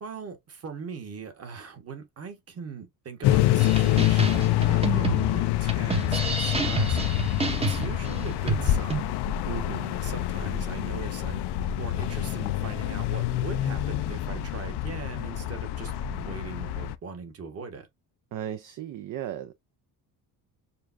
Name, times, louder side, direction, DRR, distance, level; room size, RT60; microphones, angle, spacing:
voice 1, 0.0-7.0 7.7-9.1 9.8-11.4 11.8-17.9, right 5 dB, 35° right, 1.3 m, -40 dB
sound 1, 3.2-17.0, left 13 dB, 75° left, 0.6 m, -26 dB
sound 2, 3.6-9.0, right 3 dB, 15° right, 0.7 m, -29 dB
voice 2, 9.5-9.8 18.3-19.5, right 11 dB, 50° right, 0.6 m, -35 dB
6.7 x 2.4 x 2.5 m
cardioid pair, 145°, 40 cm